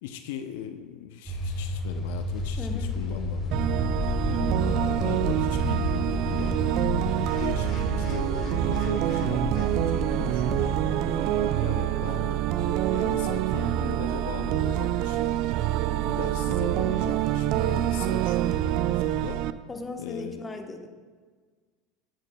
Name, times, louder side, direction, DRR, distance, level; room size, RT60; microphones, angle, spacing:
voice 1, 0.0-4.0 4.6-6.8 7.4-15.4 15.9-19.4 20.0-20.5, left 9 dB, 75° left, 8 dB, 0.5 m, -39 dB
sound 1, 1.3-8.4, left 2 dB, 15° right, 2.0 m, -33 dB
sound 2, 2.3-10.8, left 6 dB, 50° left, 1.2 m, -35 dB
voice 2, 2.6-2.9 4.3-4.6 6.7-7.2 10.1-10.4 19.7-21.0, left 3 dB, 20° left, 5 dB, 1.0 m, -38 dB
sound 3, 3.5-19.5, right 12 dB, 60° right, 0.4 m, -26 dB
13.5 x 8.7 x 2.2 m, 1.5 s
hypercardioid pair, 90°, 0 cm